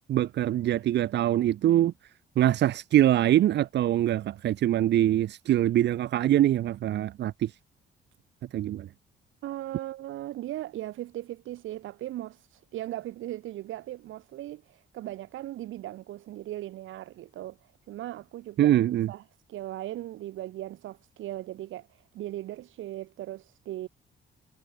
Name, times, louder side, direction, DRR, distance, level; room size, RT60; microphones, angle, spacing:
voice 1, 0.1-1.9 2.4-7.6 8.5-8.9 18.6-19.1, right 12 dB, 60° right, 0.6 m, -23 dB
voice 2, 9.4-12.4 12.7-17.6 17.9-18.7 19.1-19.2 19.5-21.9 22.1-23.9, right 14 dB, 80° right, 1.2 m, -38 dB
cardioid pair, 90°, 20 cm